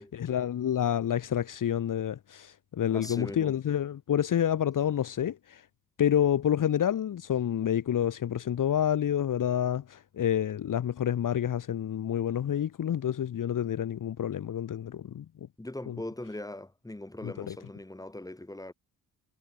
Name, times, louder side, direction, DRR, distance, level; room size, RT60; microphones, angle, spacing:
voice 1, 0.3-5.6 6.0-15.5 15.9-16.0 17.2-17.5, left 10 dB, 55° left, 1.6 m, -28 dB
voice 2, 2.9-3.6 15.6-18.7, left 1 dB, 10° left, 5.5 m, -40 dB
cardioid pair, 90°, 37 cm